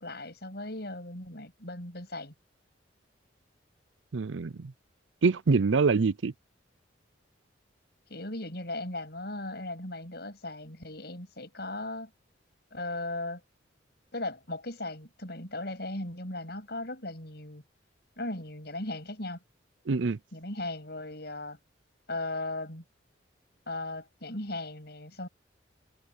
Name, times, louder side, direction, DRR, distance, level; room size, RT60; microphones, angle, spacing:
voice 1, 0.0-2.3 8.1-12.1 12.7-13.4 14.1-17.6 18.2-19.4 20.3-21.6 22.1-22.8 23.7-25.3, left 2 dB, 55° left, 7.7 m, -37 dB
voice 2, 4.1-4.7 5.2-6.3 19.9-20.2, right 4 dB, 80° right, 0.5 m, -25 dB
head